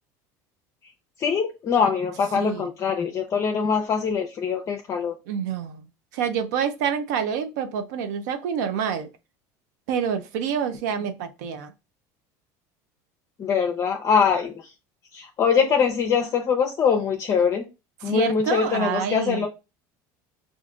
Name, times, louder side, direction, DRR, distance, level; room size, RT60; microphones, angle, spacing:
voice 1, 1.2-5.1 13.4-14.6 15.1-17.6 18.0-19.5, left 6 dB, 35° left, 0.5 m, -23 dB
voice 2, 2.4-2.7 5.3-5.8 6.1-9.1 9.9-11.7 18.0-19.5, right 7 dB, 85° right, 0.5 m, -27 dB
5.0 x 2.5 x 2.3 m
supercardioid pair, 115°, 9 cm